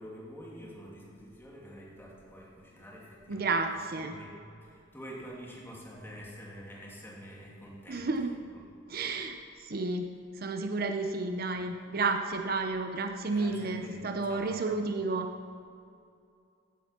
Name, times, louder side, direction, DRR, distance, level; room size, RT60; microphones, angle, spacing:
voice 1, 0.0-3.6 3.9-8.3 13.3-14.6, equal, 10° left, -4 dB, 2.7 m, -47 dB
voice 2, 3.3-4.1 7.9-8.4 8.9-10.1 10.4-15.3, right 3 dB, 50° right, 5 dB, 0.7 m, -31 dB
15.5 x 8.8 x 5.9 m, 2.4 s
head